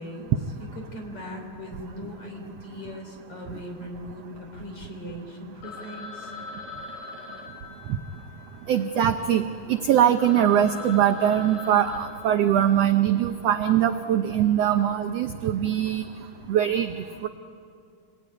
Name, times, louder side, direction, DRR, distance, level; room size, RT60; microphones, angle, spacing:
voice 1, 0.0-6.3, equal, 45° left, 2 dB, 4.6 m, -39 dB
Telephone, 5.6-9.4 9.9-10.0 10.2-13.1, left 4 dB, 70° left, 4.4 m, -41 dB
voice 2, 8.7-16.0 16.5-16.9 17.2-17.3, right 10 dB, 75° right, 7 dB, 1.5 m, -22 dB
26.5 x 20.0 x 9.6 m, 2.4 s
omnidirectional pair, 3.7 m